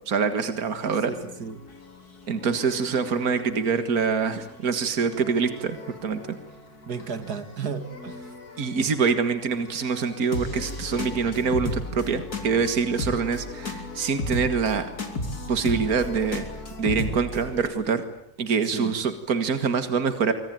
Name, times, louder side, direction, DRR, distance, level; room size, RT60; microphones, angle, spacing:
voice 1, 0.1-1.1 2.3-6.2 8.6-14.9 15.5-16.5 16.8-18.0 18.4-20.3, right 5 dB, 70° right, 10 dB, 2.3 m, -25 dB
sound 1, 0.9-17.7, left 2 dB, 75° left, 4.2 m, -36 dB
voice 2, 1.1-1.6 6.9-8.3 18.6-18.9, right 6 dB, 85° right, 10 dB, 2.6 m, -34 dB
26.5 x 24.5 x 9.2 m, 0.75 s
omnidirectional pair, 1.6 m